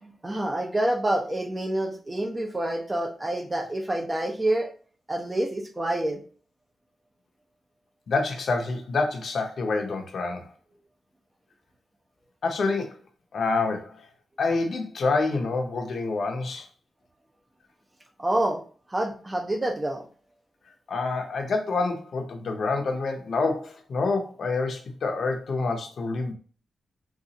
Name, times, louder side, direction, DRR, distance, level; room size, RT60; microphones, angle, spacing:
voice 1, 0.0-4.7 5.1-6.2 18.2-18.6 18.9-20.1, right 1 dB, 20° right, 4 dB, 0.6 m, -27 dB
voice 2, 8.1-10.5 12.4-13.0 13.3-14.0 14.4-16.7 20.9-26.3, left 3 dB, 60° left, 4 dB, 0.7 m, -27 dB
3.9 x 2.4 x 2.8 m, 0.40 s
cardioid pair, 95°, 0 cm